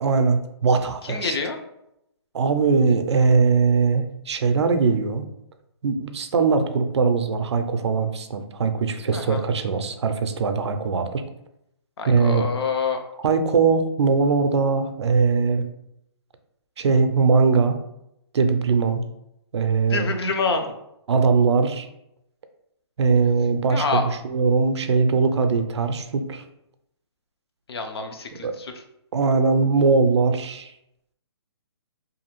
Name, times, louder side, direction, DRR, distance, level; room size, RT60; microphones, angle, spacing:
voice 1, 0.0-1.3 2.3-5.3 5.8-11.2 12.1-12.5 13.2-15.6 16.8-17.8 18.3-19.0 19.5-20.1 21.1-21.9 23.0-26.4 28.4-28.5 29.1-30.7, right 4 dB, 80° right, 8 dB, 0.4 m, -21 dB
voice 2, 1.0-1.6 9.1-9.4 12.0-13.0 19.9-20.7 23.7-24.0 27.7-28.8, left 4 dB, 65° left, 5 dB, 0.5 m, -27 dB
2.6 x 2.4 x 3.0 m, 0.82 s
hypercardioid pair, 165°, 14 cm